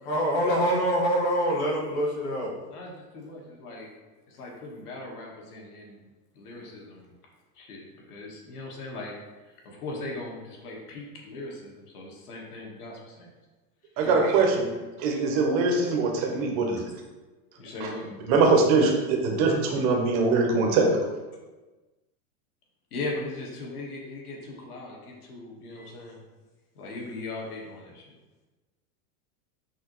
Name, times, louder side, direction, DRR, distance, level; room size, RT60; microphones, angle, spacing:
voice 1, 0.0-2.6, equal, 45° left, -3 dB, 1.4 m, -25 dB
voice 2, 2.7-3.9 4.3-6.0 6.3-7.1 7.6-7.8 8.1-9.1 9.6-13.3 14.0-14.6 17.6-18.0 22.9-26.2 26.7-28.0, left 2 dB, 75° left, -2 dB, 1.5 m, -39 dB
voice 3, 14.0-14.7 15.0-16.8 17.8-17.9 18.2-21.0, right 3 dB, 25° right, 1 dB, 0.5 m, -22 dB
5.7 x 2.7 x 3.0 m, 1.2 s
supercardioid pair, 160°, 45 cm